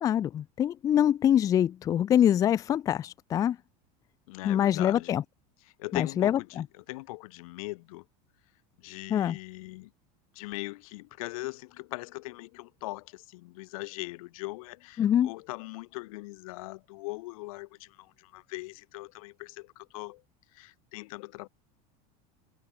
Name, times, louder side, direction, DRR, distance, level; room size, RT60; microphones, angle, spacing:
voice 1, 0.0-3.6 4.4-5.2 5.9-6.6 9.1-9.4 15.0-15.3, left 10 dB, 20° left, 0.5 m, -24 dB
voice 2, 4.3-5.2 5.8-8.0 8.8-9.9 10.3-20.2 20.5-21.5, left 22 dB, 70° left, 0.9 m, -40 dB
supercardioid pair, 175°, 19 cm